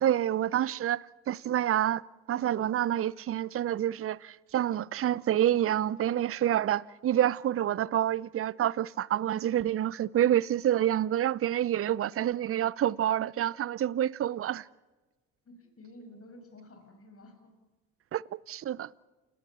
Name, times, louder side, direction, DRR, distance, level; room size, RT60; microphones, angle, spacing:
voice 1, 0.0-2.0 2.3-14.7 18.1-18.9, right 11 dB, 40° right, 0.7 m, -28 dB
voice 2, 15.4-17.5, left 1 dB, 40° left, 6.1 m, -51 dB
29.0 x 18.0 x 7.2 m
hypercardioid pair, 55°, 35 cm